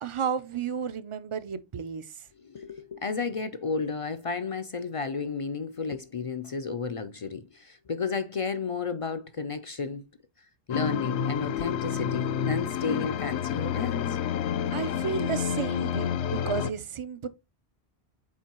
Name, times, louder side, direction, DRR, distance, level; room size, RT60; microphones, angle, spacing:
voice 1, 0.0-2.1 14.7-17.3, right 7 dB, 50° right, 0.3 m, -32 dB
voice 2, 2.4-10.0 10.7-14.2, left 5 dB, 55° left, 0.3 m, -32 dB
sound 1, 10.7-16.7, left 8 dB, 80° left, 0.8 m, -29 dB
7.4 x 4.5 x 2.9 m
omnidirectional pair, 1.1 m